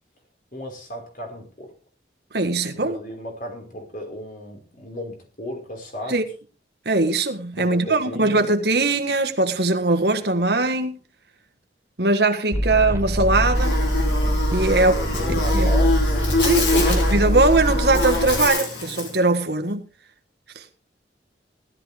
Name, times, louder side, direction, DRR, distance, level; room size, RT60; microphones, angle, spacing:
voice 1, 0.5-1.7 2.7-6.2 7.5-8.4 14.6-16.2 16.7-17.1, equal, 50° left, 5.0 m, -35 dB
voice 2, 2.3-3.0 6.1-6.2 6.8-11.0 12.0-13.8 14.5-14.9 15.3-15.7 16.4-19.9 20.5-20.6, right 2 dB, 65° right, 1.6 m, -21 dB
sound 1, 12.5-18.5, equal, 15° right, 0.8 m, -23 dB
Buzz, 13.5-19.2, left 2 dB, 80° left, 4.8 m, -25 dB
16.5 x 12.5 x 3.5 m
head